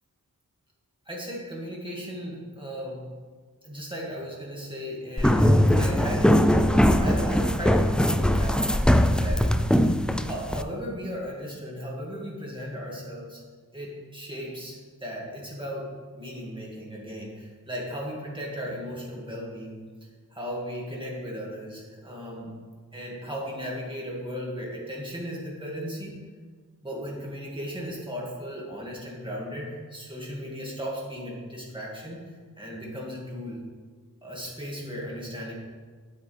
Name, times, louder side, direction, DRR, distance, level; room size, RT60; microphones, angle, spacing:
voice 1, 1.1-3.1 3.6-9.5 10.2-13.4 13.7-19.8 20.3-22.6 22.9-26.2 26.8-33.6 34.2-35.5, equal, 15° right, -4 dB, 2.2 m, -36 dB
sound 1, 5.2-10.6, equal, 5° left, 0.3 m, -21 dB
8.9 x 8.2 x 3.5 m, 1.5 s
wide cardioid pair, 55°, 36 cm